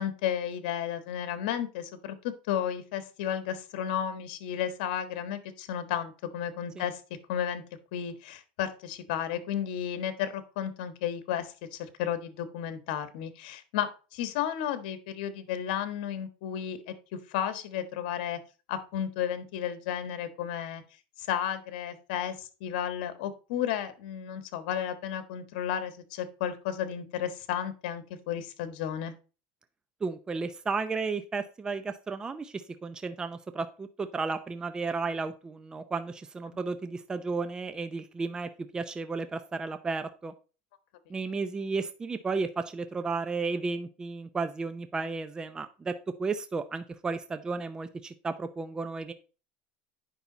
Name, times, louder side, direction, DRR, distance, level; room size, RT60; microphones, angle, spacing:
voice 1, 0.0-7.0 7.3-7.6 7.9-16.9 17.3-18.4 18.7-20.8 21.2-29.1, left 9 dB, 70° left, 10 dB, 1.4 m, -33 dB
voice 2, 30.0-40.3 41.1-45.9 46.2-49.1, right 4 dB, 15° right, 10 dB, 0.6 m, -33 dB
9.6 x 5.7 x 4.0 m, 0.34 s
supercardioid pair, 135°, 5 cm